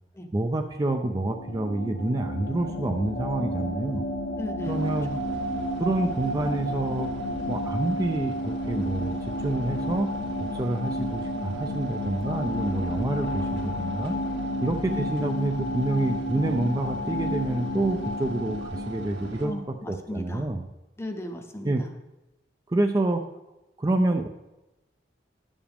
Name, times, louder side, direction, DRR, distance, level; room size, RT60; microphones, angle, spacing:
voice 1, 0.3-4.0 4.7-5.1 5.8-7.1 7.5-10.1 10.5-14.2 14.6-19.5 19.9-20.7 21.6-21.8 22.7-23.2 23.8-24.3, right 2 dB, 20° right, 5 dB, 0.4 m, -27 dB
sound 1, 1.0-19.8, left 1 dB, 55° left, 0.8 m, -31 dB
voice 2, 4.4-4.8 14.9-15.1 19.4-20.5 21.0-21.9, left 1 dB, 15° left, 6 dB, 0.7 m, -36 dB
sound 2, 4.6-19.5, right 1 dB, 70° right, 1.8 m, -44 dB
10.0 x 7.1 x 3.5 m, 0.99 s
head